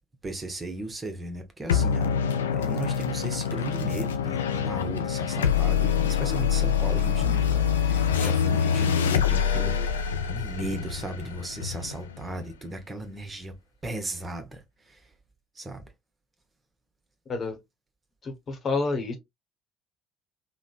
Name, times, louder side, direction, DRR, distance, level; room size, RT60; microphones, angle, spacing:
voice 1, 0.2-2.1 2.5-13.5 13.8-14.6 14.9-15.0 15.6-15.9, right 2 dB, 25° right, 0.8 m, -36 dB
sound 1, 1.7-12.5, left 8 dB, 80° left, 0.3 m, -25 dB
voice 2, 17.3-17.6 18.2-19.2, left 3 dB, 40° left, 1.0 m, -29 dB
3.6 x 2.1 x 2.3 m
figure-of-eight pair, 55°, 0 cm